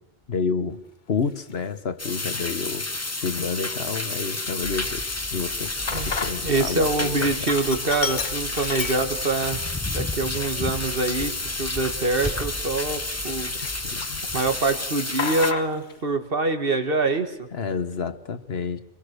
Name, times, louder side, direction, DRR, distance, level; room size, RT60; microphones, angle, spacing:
voice 1, 0.3-0.8 1.1-7.3 13.8-14.2 17.5-18.8, left 5 dB, 65° left, 12 dB, 1.4 m, -30 dB
Sink (filling or washing), 1.4-1.5 2.2-2.7 3.1-3.2 3.5-6.6 6.9-9.5 9.9-10.0 10.7-13.3 13.6-14.4 14.6-16.0, left 6 dB, 45° left, 1.1 m, -34 dB
sound 1, 2.0-15.5, left 2 dB, 15° left, 0.8 m, -30 dB
sound 2, 4.6-13.9, equal, 10° right, 3.7 m, -39 dB
voice 2, 5.9-9.6 9.9-13.5 14.3-17.5, right 3 dB, 55° right, 8 dB, 1.9 m, -25 dB
24.5 x 22.0 x 6.6 m, 0.87 s
omnidirectional pair, 1.1 m